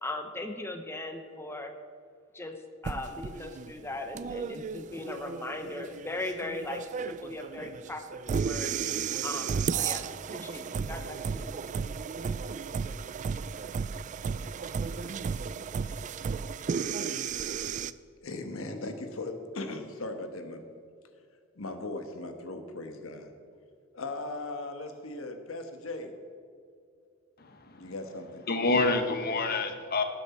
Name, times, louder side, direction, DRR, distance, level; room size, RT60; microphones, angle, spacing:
voice 1, 0.0-1.8 2.3-2.6 2.8-8.7 9.2-10.0 10.3-11.5, left 2 dB, 10° left, 5 dB, 0.7 m, -38 dB
sound 1, 2.8-17.9, right 6 dB, 35° right, 0.3 m, -34 dB
voice 2, 18.2-20.6 21.6-23.3 23.9-26.1 27.8-28.4, left 2 dB, 80° left, 7 dB, 1.2 m, -38 dB
voice 3, 27.4-27.9 28.5-30.0, left 3 dB, 50° left, 7 dB, 1.1 m, -28 dB
18.0 x 7.7 x 4.3 m, 2.3 s
head